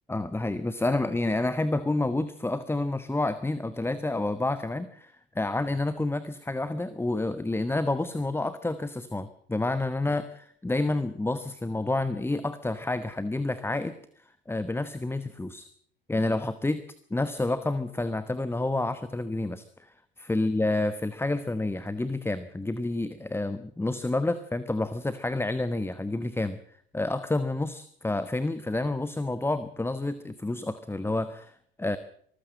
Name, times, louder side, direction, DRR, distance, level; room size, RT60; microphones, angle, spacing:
voice 1, 0.1-15.7 16.1-16.8 17.1-26.6 26.9-32.0, left 2 dB, 10° left, 13 dB, 1.2 m, -29 dB
24.0 x 15.0 x 7.6 m, 0.62 s
figure-of-eight pair, 65°, 30 cm